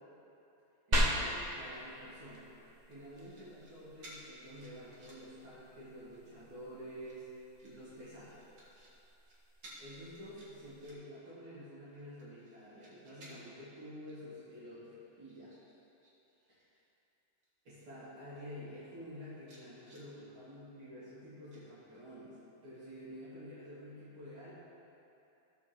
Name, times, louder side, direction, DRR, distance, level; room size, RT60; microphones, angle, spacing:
sound 1, 0.9-10.9, equal, 45° right, 0.5 m, -40 dB
voice 1, 0.9-2.5 2.9-7.3 7.6-8.5 9.8-15.5 16.5-16.7 17.6-24.6, equal, 85° right, -11 dB, 3.3 m, -49 dB
sound 2, 2.9-3.7 4.0-5.4 5.8-6.3 6.9-7.7 8.3-8.9 9.2-9.3 9.6-9.8 10.1-11.2 11.7-13.6 14.1-14.2 14.6-16.1 16.4-16.8 17.4-17.5 17.8-18.4 18.9-19.0 19.4-20.1 21.5-22.2 22.6-22.8, right 1 dB, 70° right, 2.6 m, -58 dB
16.0 x 7.0 x 3.1 m, 2.8 s
omnidirectional pair, 2.2 m